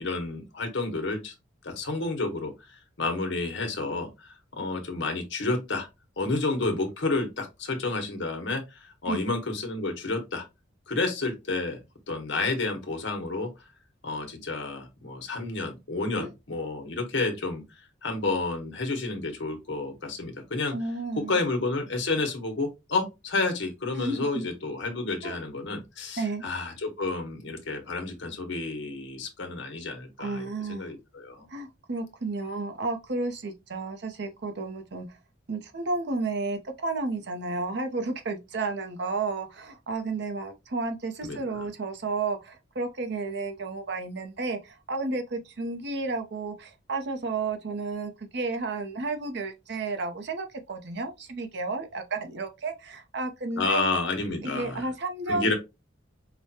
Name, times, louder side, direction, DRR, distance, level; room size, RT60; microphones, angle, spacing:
voice 1, 0.0-1.3 1.6-5.9 6.2-10.4 10.9-11.8 12.1-13.5 14.0-17.6 18.0-20.7 21.2-31.5 41.2-41.7 53.6-54.9 55.3-55.5, left 3 dB, 70° left, 1.0 m, -30 dB
voice 2, 20.7-21.4 23.9-24.4 25.2-25.4 26.2-26.4 30.2-30.9 31.5-35.2 35.5-53.8 54.4-55.5, right 3 dB, 60° right, 0.7 m, -32 dB
4.9 x 2.2 x 2.8 m
head